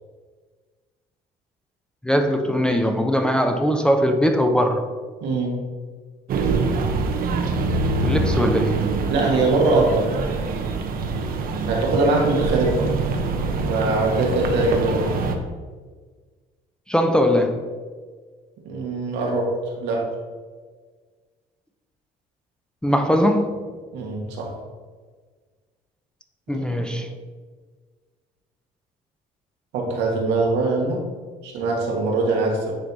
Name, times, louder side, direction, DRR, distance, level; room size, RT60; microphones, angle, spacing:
voice 1, 2.0-4.8 8.0-8.9 16.9-17.6 22.8-23.6 26.5-27.1, equal, 5° left, 5 dB, 0.6 m, -20 dB
voice 2, 5.2-5.6 9.1-10.3 11.7-12.9 13.6-15.1 18.6-20.1 23.9-24.5 26.5-26.7 29.7-31.0 31.4-32.7, right 2 dB, 85° right, -1 dB, 1.5 m, -22 dB
sound 1, 6.3-15.4, right 3 dB, 60° right, 0.8 m, -24 dB
9.4 x 3.2 x 4.0 m, 1.5 s
cardioid pair, 110°, 17 cm